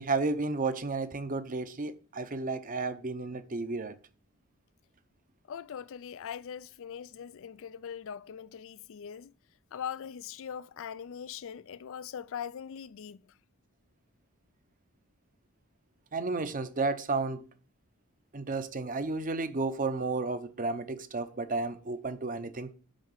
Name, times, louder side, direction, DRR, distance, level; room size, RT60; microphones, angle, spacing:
voice 1, 0.0-4.0 16.1-17.5 18.3-22.7, right 3 dB, 40° right, 0.7 m, -32 dB
voice 2, 5.5-9.3 9.7-13.2, left 8 dB, 60° left, 0.4 m, -41 dB
6.5 x 5.8 x 7.3 m
head